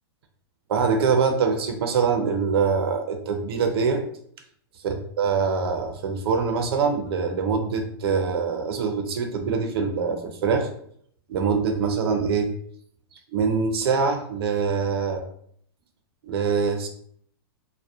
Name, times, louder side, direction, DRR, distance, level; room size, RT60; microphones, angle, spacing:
voice 1, 0.7-4.0 4.8-10.7 11.3-12.5 13.3-15.2 16.2-16.9, right 5 dB, 70° right, 5 dB, 0.5 m, -24 dB
2.7 x 2.1 x 2.3 m, 0.64 s
hypercardioid pair, 140°, 13 cm